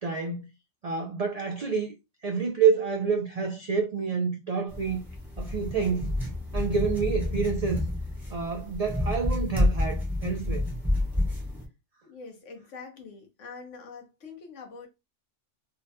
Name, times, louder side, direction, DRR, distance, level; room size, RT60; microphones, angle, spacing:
voice 1, 0.0-0.5 0.8-1.9 2.2-5.0 5.4-6.1 6.5-7.8 8.3-10.7, right 5 dB, 75° right, 0.3 m, -28 dB
sound 1, 4.7-11.6, left 1 dB, ahead, 0.8 m, -29 dB
voice 2, 12.0-14.9, left 4 dB, 75° left, 1.2 m, -44 dB
3.7 x 2.1 x 2.7 m
omnidirectional pair, 1.3 m